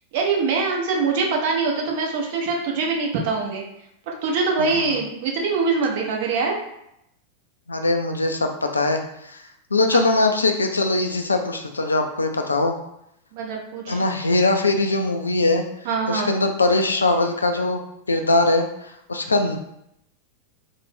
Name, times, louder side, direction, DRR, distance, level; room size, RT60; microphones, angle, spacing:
voice 1, 0.1-3.6 4.1-6.6 9.9-10.0 13.3-14.0 15.9-16.3, right 4 dB, 50° right, 0 dB, 0.6 m, -23 dB
voice 2, 7.7-9.4 9.7-12.8 13.9-15.6 16.1-17.8 18.1-19.6, left 2 dB, 75° left, 5 dB, 0.3 m, -21 dB
2.6 x 2.1 x 3.3 m, 0.78 s
figure-of-eight pair, 90°, 0 cm